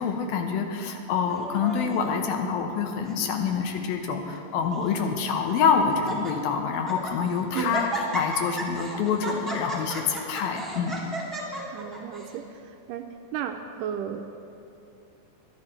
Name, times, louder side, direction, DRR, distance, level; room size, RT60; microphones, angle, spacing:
voice 1, 0.0-11.0, left 6 dB, 85° left, 4 dB, 2.8 m, -26 dB
Laughter, 1.3-2.1 2.8-3.2 3.4-3.5 4.3-4.9 5.5-5.6 5.9-6.3 6.7-7.1 7.5-12.3, right 1 dB, ahead, 0.9 m, -34 dB
voice 2, 11.7-12.4 12.9-13.1 13.3-14.4, right 9 dB, 80° right, 5 dB, 2.0 m, -33 dB
23.5 x 10.5 x 3.3 m, 3.0 s
omnidirectional pair, 4.1 m